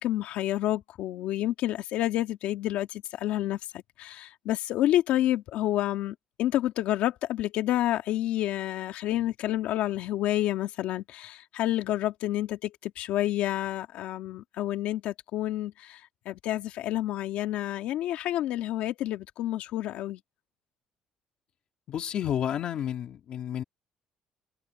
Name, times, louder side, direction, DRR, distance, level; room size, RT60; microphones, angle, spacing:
voice 1, 0.0-3.6 4.0-16.0 16.3-20.2, left 13 dB, 75° left, 2.0 m, -29 dB
voice 2, 21.9-23.6, left 10 dB, 50° left, 2.1 m, -31 dB
cardioid pair, 160°, 2 cm